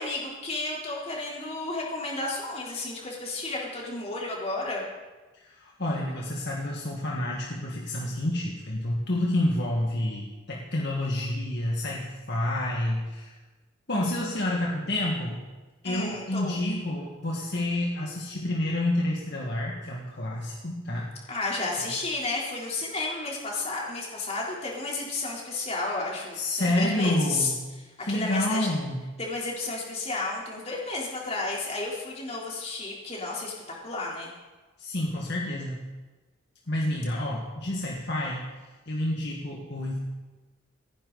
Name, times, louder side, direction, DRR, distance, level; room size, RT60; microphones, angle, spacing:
voice 1, 0.0-4.8 15.8-16.6 21.3-27.5 28.1-28.7 29.2-34.3, left 3 dB, 30° left, -3 dB, 3.7 m, -32 dB
voice 2, 5.4-13.3 13.9-15.4 15.8-21.4 26.3-27.6 28.0-29.0 34.8-35.9 36.7-38.5 38.9-40.0, left 1 dB, 55° left, -3 dB, 1.8 m, -29 dB
27.5 x 10.5 x 4.1 m, 1.2 s
head